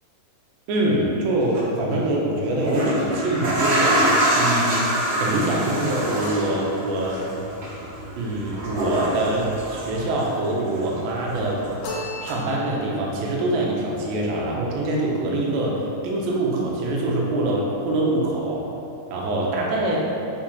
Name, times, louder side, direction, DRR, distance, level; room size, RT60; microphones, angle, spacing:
voice 1, 0.7-4.0 4.4-4.8 5.2-7.2 8.2-11.6 12.2-15.7 16.0-18.6 19.1-20.0, right 1 dB, 80° right, -3 dB, 2.0 m, -24 dB
sound 1, 1.4-1.6 2.4-10.5 10.8-11.8 12.3-12.4, right 1 dB, 65° right, 2.9 m, -25 dB
sound 2, 11.8-13.1, left 1 dB, 85° left, 2.7 m, -34 dB
7.1 x 2.8 x 2.2 m, 2.8 s
omnidirectional pair, 4.5 m